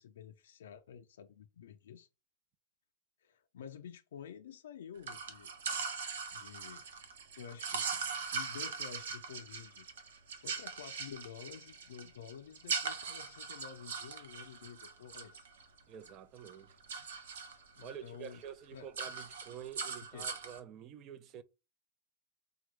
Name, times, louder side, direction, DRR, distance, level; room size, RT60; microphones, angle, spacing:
voice 1, 0.0-2.1 3.2-5.5 6.3-6.8 7.4-8.0 8.3-9.9 10.4-15.5 17.8-18.4 18.7-18.9 20.1-20.3, left 8 dB, 90° left, 0.4 m, -50 dB
sound 1, 5.0-16.1 16.4-17.9 18.3-18.5 18.8-20.6, right 5 dB, 90° right, 0.7 m, -40 dB
voice 2, 15.9-16.7 17.8-21.4, right 9 dB, 35° right, 0.4 m, -48 dB
3.6 x 2.2 x 3.1 m
supercardioid pair, 140°, 0 cm